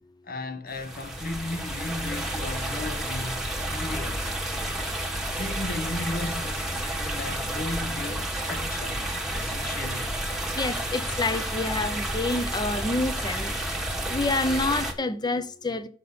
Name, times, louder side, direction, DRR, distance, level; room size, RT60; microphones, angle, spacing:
voice 1, 0.2-4.3 5.3-10.1, left 2 dB, 45° left, 1.0 m, -35 dB
sound 1, 0.7-14.9, right 1 dB, ahead, 1.3 m, -31 dB
voice 2, 10.5-13.5 14.1-15.9, left 2 dB, 20° left, 0.6 m, -28 dB
6.0 x 5.5 x 6.8 m
head